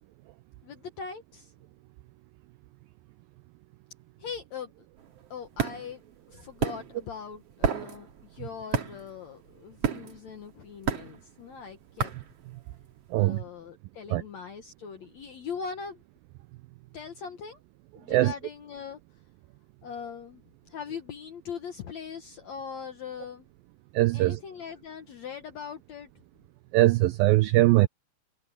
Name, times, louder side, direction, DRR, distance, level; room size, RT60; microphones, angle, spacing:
voice 1, 0.6-1.5 4.2-4.9 5.3-6.0 6.3-12.1 13.1-16.0 16.9-17.6 18.0-19.0 19.8-23.5 24.1-26.1, left 6 dB, 65° left, 1.8 m, -41 dB
sound 1, 5.0-13.1, right 6 dB, 45° right, 2.4 m, -32 dB
voice 2, 23.9-24.4 26.7-27.9, right 17 dB, 85° right, 2.0 m, -21 dB
omnidirectional pair, 4.7 m